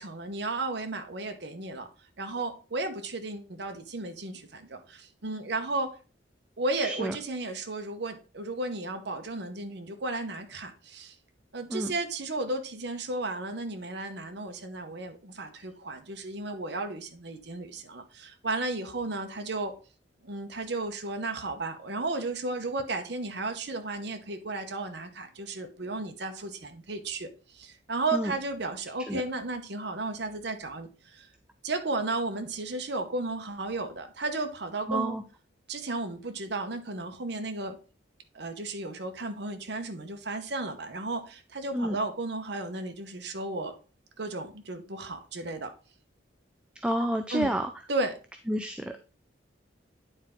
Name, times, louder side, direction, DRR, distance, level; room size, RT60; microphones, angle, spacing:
voice 1, 0.0-1.9 2.2-5.9 6.6-11.1 11.5-19.8 20.2-31.3 31.6-35.2 35.7-37.8 38.3-43.8 44.2-45.7 47.3-47.5 47.9-48.2, right 2 dB, 60° right, 6 dB, 1.0 m, -34 dB
voice 2, 6.8-7.2 11.7-11.9 28.1-28.3 29.1-29.2 34.9-35.2 41.7-42.0 46.8-47.7 48.5-49.1, right 1 dB, 5° right, 6 dB, 0.4 m, -29 dB
9.3 x 4.4 x 3.6 m, 0.35 s
head